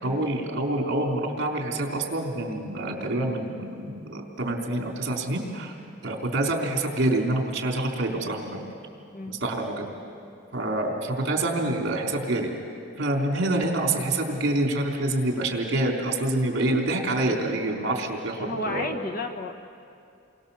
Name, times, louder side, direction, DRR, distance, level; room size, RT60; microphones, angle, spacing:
voice 1, 0.0-5.8 6.0-8.6 9.3-9.9 10.5-12.5 13.0-18.9, right 2 dB, 55° right, 1 dB, 3.9 m, -27 dB
voice 2, 18.4-19.5, left 1 dB, 40° left, 5 dB, 1.7 m, -32 dB
29.5 x 23.5 x 7.2 m, 2.5 s
head